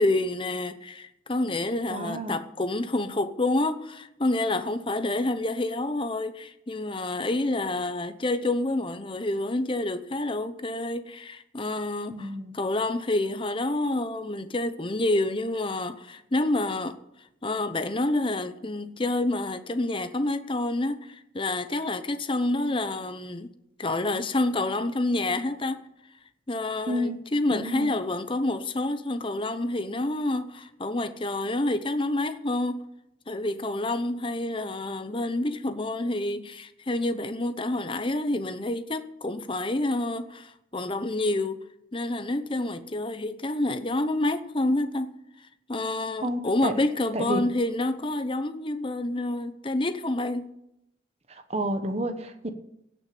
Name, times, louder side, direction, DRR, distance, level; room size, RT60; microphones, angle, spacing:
voice 1, 0.0-12.3 12.5-17.0 17.4-23.5 23.8-25.9 26.5-32.9 33.3-41.6 41.9-45.2 45.7-50.5, left 2 dB, 30° left, 0.9 m, -28 dB
voice 2, 1.9-2.4 12.1-12.6 26.9-27.2 27.5-27.9 46.2-46.8 47.1-47.5 51.3-52.5, right 1 dB, 35° right, 1.3 m, -30 dB
16.5 x 6.4 x 8.6 m
head